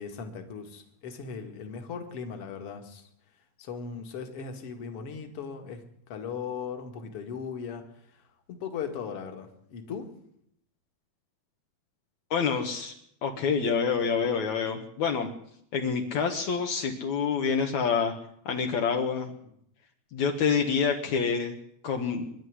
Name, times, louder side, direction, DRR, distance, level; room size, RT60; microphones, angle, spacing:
voice 1, 0.0-3.1 3.6-7.9 8.5-10.1 19.4-19.5, left 6 dB, 45° left, 6 dB, 2.0 m, -38 dB
voice 2, 12.3-12.9 13.2-15.3 15.7-18.1 18.4-19.3 20.1-21.5 21.8-22.3, left 6 dB, 70° left, 3 dB, 1.7 m, -27 dB
24.0 x 11.5 x 9.8 m, 0.71 s
omnidirectional pair, 5.6 m